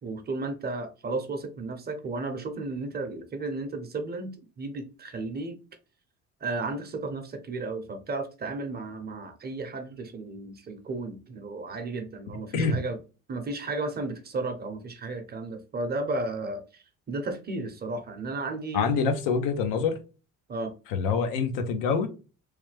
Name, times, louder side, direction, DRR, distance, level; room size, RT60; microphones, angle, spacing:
voice 1, 0.0-5.6 6.4-13.0 13.3-18.9 20.5-20.7, right 3 dB, 30° right, 0.7 m, -34 dB
voice 2, 18.7-20.0 20.9-22.1, left 5 dB, 85° left, 0.8 m, -25 dB
3.2 x 2.2 x 3.2 m
cardioid pair, 105°, 32 cm